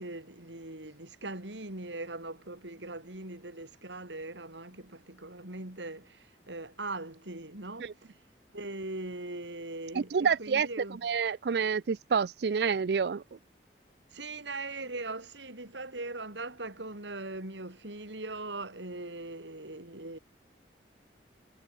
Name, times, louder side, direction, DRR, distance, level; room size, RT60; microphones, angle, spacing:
voice 1, 0.0-8.2 8.5-11.0 14.1-20.2, right 2 dB, 85° right, 4.4 m, -40 dB
voice 2, 9.9-10.7 11.0-13.2, right 6 dB, 65° right, 0.4 m, -28 dB
head